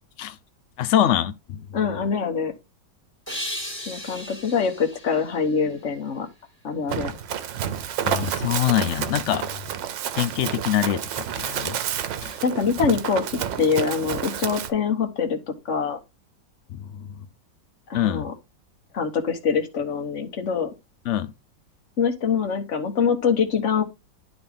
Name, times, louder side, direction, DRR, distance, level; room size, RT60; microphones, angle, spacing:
voice 1, 0.8-1.7 8.0-9.5 10.1-11.8 12.2-12.4 16.7-17.3 17.9-18.3 21.1-21.3, left 11 dB, 85° left, 0.6 m, -24 dB
voice 2, 1.7-2.5 3.9-6.3 6.6-7.2 12.4-16.0 17.9-18.3 18.9-20.7 22.0-23.8, left 6 dB, 45° left, 1.4 m, -24 dB
sound 1, 3.3-6.4, left 1 dB, 5° left, 1.9 m, -36 dB
Run, 6.9-14.7, right 9 dB, 80° right, 1.5 m, -30 dB
11.0 x 4.2 x 3.5 m
omnidirectional pair, 2.0 m